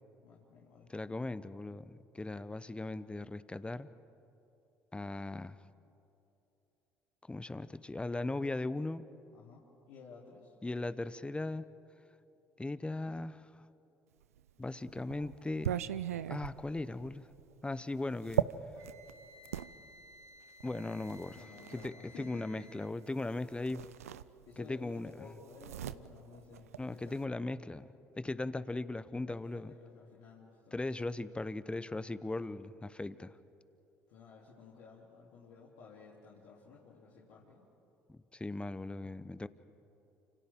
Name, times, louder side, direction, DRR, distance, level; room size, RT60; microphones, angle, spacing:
voice 1, 0.2-0.9 9.3-11.0 21.3-22.8 24.4-27.4 29.3-30.9 34.1-37.6, left 5 dB, 70° left, -6 dB, 3.3 m, -54 dB
voice 2, 0.9-3.9 4.9-5.6 7.3-9.0 10.6-11.6 12.6-13.5 14.6-15.7 16.3-17.3 17.6-18.5 20.6-21.4 21.7-23.8 24.6-25.1 26.8-29.7 30.7-33.3 38.1-39.5, left 2 dB, 15° left, 15 dB, 0.9 m, -38 dB
sound 1, 14.4-19.7 20.6-22.0 23.2-23.3 23.6-24.8 25.0-27.3, right 10 dB, 85° right, 0.4 m, -38 dB
Wind instrument woodwind instrument, 18.7-22.9, left 1 dB, 40° right, 1.6 m, -57 dB
29.5 x 27.5 x 3.8 m, 2.9 s
hypercardioid pair, 55°, 8 cm